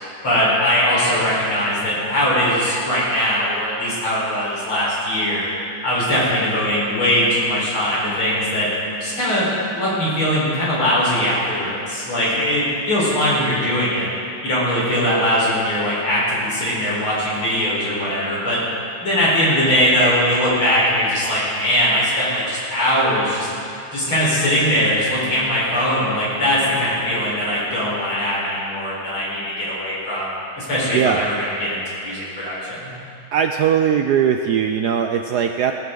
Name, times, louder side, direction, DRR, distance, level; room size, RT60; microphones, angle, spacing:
voice 1, 0.2-5.5 5.8-8.7 9.0-14.1 14.4-18.6 19.0-23.5 23.9-30.3 30.6-32.9, equal, 80° left, -7 dB, 5.4 m, -20 dB
voice 2, 33.3-35.7, right 8 dB, 75° right, 5 dB, 0.9 m, -19 dB
19.5 x 13.0 x 3.9 m, 2.7 s
omnidirectional pair, 2.3 m